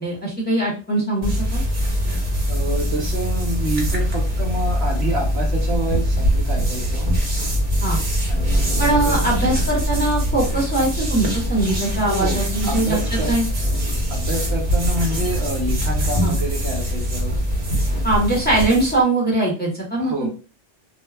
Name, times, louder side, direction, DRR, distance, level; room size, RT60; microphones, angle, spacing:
voice 1, 0.0-1.6 7.8-8.0 8.8-13.0 13.2-13.4 16.2-16.3 18.0-20.3, right 2 dB, 10° left, -5 dB, 0.9 m, -21 dB
sound 1, 1.2-19.0, equal, 45° right, 1.0 m, -22 dB
voice 2, 2.5-7.1 8.3-9.3 12.1-13.4 14.1-17.3 20.0-20.3, right 1 dB, 65° right, 0 dB, 1.0 m, -28 dB
2.4 x 2.1 x 3.3 m, 0.36 s
omnidirectional pair, 1.2 m